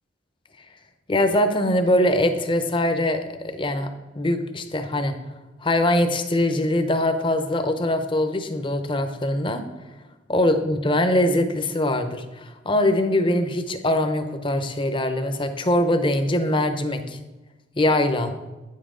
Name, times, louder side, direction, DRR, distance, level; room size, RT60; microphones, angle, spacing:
voice 1, 1.1-3.9 4.1-5.2 5.6-9.6 10.3-17.2 17.8-18.3, left 1 dB, 25° left, 8 dB, 0.7 m, -22 dB
9.4 x 7.4 x 3.7 m, 1.1 s
head